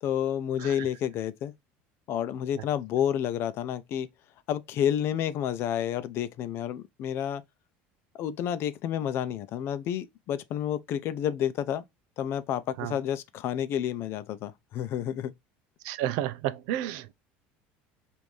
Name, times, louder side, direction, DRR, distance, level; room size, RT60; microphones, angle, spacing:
voice 1, 0.0-1.5 2.1-4.1 4.5-7.4 8.2-11.8 12.2-15.3, left 10 dB, 50° left, 0.5 m, -30 dB
voice 2, 15.8-17.1, right 12 dB, 75° right, 0.5 m, -31 dB
5.2 x 2.6 x 3.0 m
supercardioid pair, 125°, 5 cm